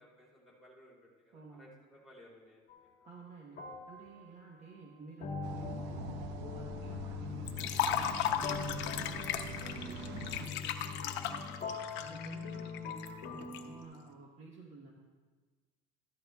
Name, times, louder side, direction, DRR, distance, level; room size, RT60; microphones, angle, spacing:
voice 1, 0.0-2.7 9.4-9.8 10.2-10.3, equal, ahead, -5 dB, 2.9 m, -59 dB
voice 2, 1.3-1.7 3.0-9.4 9.6-11.6 11.9-14.9, right 3 dB, 35° right, -1 dB, 1.1 m, -52 dB
sound 1, 2.7-2.9 3.6-13.8, left 5 dB, 45° left, 1.2 m, -42 dB
sound 2, 5.4-10.5, right 6 dB, 60° right, 0.7 m, -46 dB
Liquid, 7.5-13.6, left 9 dB, 60° left, 0.7 m, -36 dB
14.0 x 11.5 x 2.3 m, 1.4 s
cardioid pair, 150°, 21 cm